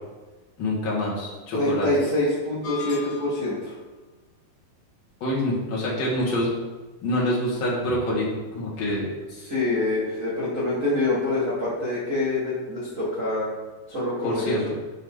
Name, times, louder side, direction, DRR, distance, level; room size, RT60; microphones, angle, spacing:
voice 1, 0.6-2.1 5.2-6.5 7.0-9.1 14.2-14.6, left 1 dB, 45° left, -6 dB, 1.9 m, -26 dB
voice 2, 1.5-3.7 9.4-13.5 13.9-14.6, left 2 dB, 75° right, -10 dB, 0.7 m, -25 dB
sound 1, 2.6-3.6, left 8 dB, 70° left, 2.5 m, -38 dB
7.7 x 4.4 x 3.7 m, 1.2 s
omnidirectional pair, 4.4 m